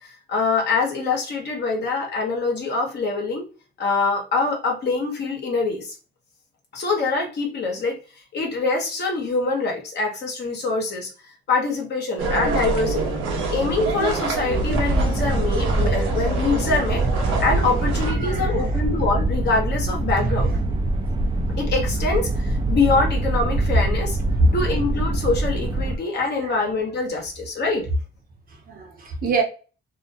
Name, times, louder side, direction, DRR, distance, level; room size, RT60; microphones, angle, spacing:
voice 1, 0.0-3.5 3.8-5.9 6.7-8.0 8.3-11.1 11.5-13.1 13.5-20.5 21.6-24.2 24.5-27.9, left 3 dB, 60° left, 1 dB, 1.0 m, -24 dB
sound 1, 12.2-18.1, right 3 dB, 85° right, 0.8 m, -26 dB
sound 2, 14.5-26.0, right 2 dB, 25° right, 0.5 m, -24 dB
voice 2, 18.0-18.8 20.2-20.6 24.4-24.5 25.8-25.9 26.4-26.6 28.5-29.4, right 2 dB, 45° right, 2 dB, 0.9 m, -25 dB
2.6 x 2.1 x 2.7 m, 0.35 s
cardioid pair, 90°, 20 cm